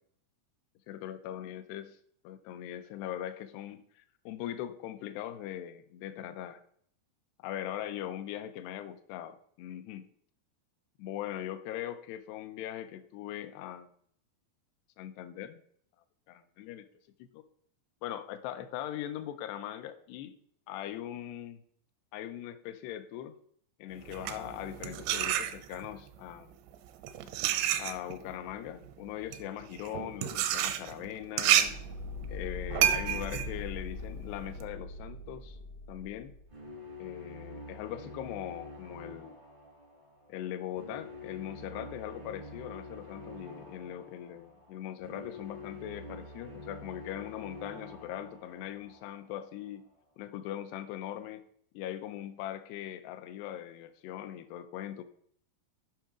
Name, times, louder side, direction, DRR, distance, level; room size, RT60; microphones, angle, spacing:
voice 1, 0.9-2.0 2.2-6.6 7.4-10.1 11.0-13.9 15.0-15.6 16.3-16.9 17.2-17.4 18.0-20.4 20.7-21.6 22.1-23.4 23.8-26.5 27.8-31.9 32.3-35.6 35.9-36.3 37.0-39.4 40.3-49.9 50.2-51.4 51.7-55.0, left 11 dB, 80° left, 9 dB, 2.7 m, -40 dB
sound 1, 24.0-26.0 26.7-34.6, right 11 dB, 85° right, 2.9 m, -30 dB
sound 2, 31.6-36.5, left 3 dB, 35° left, 0.7 m, -41 dB
sound 3, 36.5-49.6, left 2 dB, 50° right, 0.5 m, -47 dB
9.2 x 5.8 x 4.8 m, 0.62 s
omnidirectional pair, 5.0 m